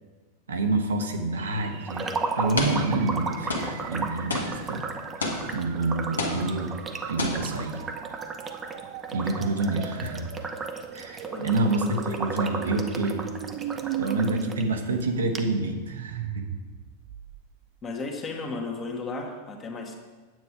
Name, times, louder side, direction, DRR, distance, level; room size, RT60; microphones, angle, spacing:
voice 1, 0.5-4.3 4.7-4.9 5.5-6.8 7.1-7.8 9.1-10.3 10.9-13.3 14.0-16.5, right 2 dB, 70° right, 3 dB, 1.1 m, -28 dB
sound 1, 1.4-17.7, right 12 dB, 45° right, 0.4 m, -40 dB
sound 2, 1.5-1.7 2.6-3.2 3.5-5.8 6.2-6.9 7.2-7.8, left 2 dB, 70° left, 1.5 m, -31 dB
sound 3, 1.9-14.6 15.0-15.1 15.3-15.4, right 4 dB, 20° right, 0.9 m, -35 dB
voice 2, 17.8-20.0, left 3 dB, 25° left, 2 dB, 1.5 m, -34 dB
9.4 x 8.2 x 4.9 m, 1.3 s
figure-of-eight pair, 90°, 0 cm